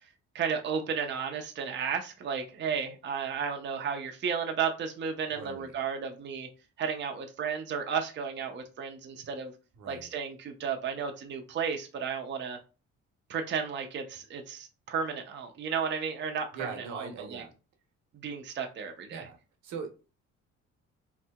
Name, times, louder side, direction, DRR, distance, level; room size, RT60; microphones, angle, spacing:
voice 1, 0.3-6.5 6.8-9.5 9.9-12.6 13.3-17.4 18.2-19.3, right 6 dB, 40° right, 0.5 m, -33 dB
voice 2, 5.3-5.7 9.7-10.1 16.5-17.5 19.1-19.4 19.6-20.1, right 5 dB, 75° right, 0.9 m, -41 dB
3.2 x 2.8 x 2.2 m
cardioid pair, 100°, 29 cm